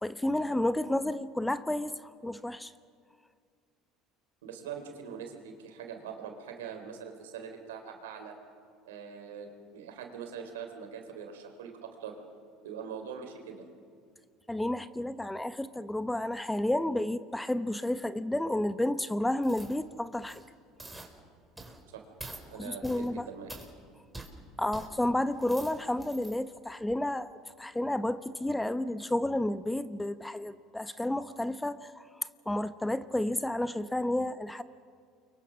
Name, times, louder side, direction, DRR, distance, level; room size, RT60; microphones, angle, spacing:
voice 1, 0.0-2.7 14.5-20.4 22.6-23.2 24.6-27.3 27.6-34.6, left 1 dB, 10° left, 12 dB, 1.0 m, -31 dB
voice 2, 4.4-8.3 8.8-12.2 12.6-13.7 21.9-22.0 22.5-23.5, right 7 dB, 90° right, 4 dB, 4.0 m, -43 dB
sound 1, 19.4-19.8 20.1-20.5 20.8-21.1 21.6-21.8 22.2-22.4 22.8-23.1 23.5-23.7 24.1-24.3 24.7-24.9 25.3-26.4 26.8-26.9, right 2 dB, 10° right, 4.7 m, -46 dB
29.0 x 23.5 x 6.4 m, 2.2 s
hypercardioid pair, 85°, 0 cm